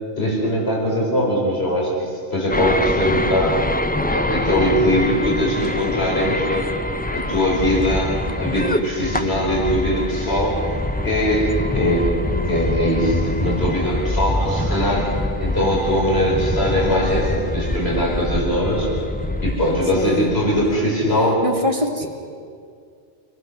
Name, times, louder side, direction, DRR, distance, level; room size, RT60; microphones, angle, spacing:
voice 1, 0.2-3.6 4.1-6.6 7.1-8.1 8.4-10.6 11.0-12.2 12.5-15.0 15.4-18.9 19.4-21.4 22.0-22.1, equal, 60° left, -3 dB, 5.1 m, -21 dB
sound 1, 2.5-20.8, left 1 dB, 10° left, 0.5 m, -25 dB
voice 2, 11.9-12.5 19.9-20.3 21.4-22.1, left 1 dB, 30° right, 3 dB, 1.9 m, -25 dB
27.0 x 19.5 x 6.8 m, 2.3 s
omnidirectional pair, 1.2 m